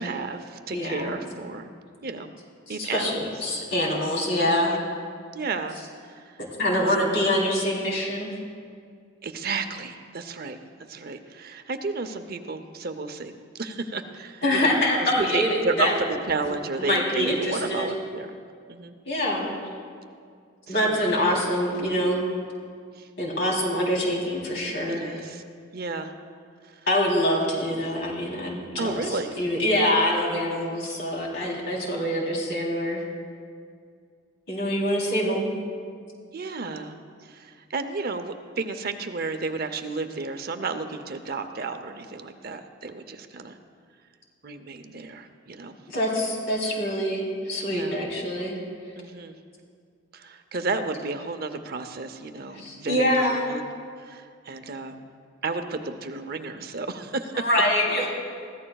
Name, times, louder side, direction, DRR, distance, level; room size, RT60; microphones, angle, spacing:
voice 1, 0.0-1.7 2.0-2.3 2.7-3.3 4.6-4.8 5.3-5.8 6.0-6.4 6.7-6.9 9.2-10.6 10.9-14.7 15.0-18.3 18.7-18.9 20.7-21.1 23.0-23.1 24.9-25.4 25.7-26.1 26.6-26.9 28.8-29.4 30.3-30.6 36.3-37.0 37.2-43.6 44.4-45.8 47.7-48.0 49.0-49.4 50.1-53.7 54.0-55.0 55.4-57.5, right 3 dB, 50° right, 8 dB, 0.7 m, -32 dB
voice 2, 0.7-1.2 2.7-4.8 6.6-8.3 14.4-15.9 16.8-17.9 19.0-19.6 20.7-22.3 23.2-25.1 26.9-33.0 34.5-35.5 45.9-48.6 52.5-53.4 57.3-58.1, left 1 dB, 60° left, -2 dB, 3.4 m, -25 dB
22.0 x 15.0 x 2.3 m, 2.2 s
head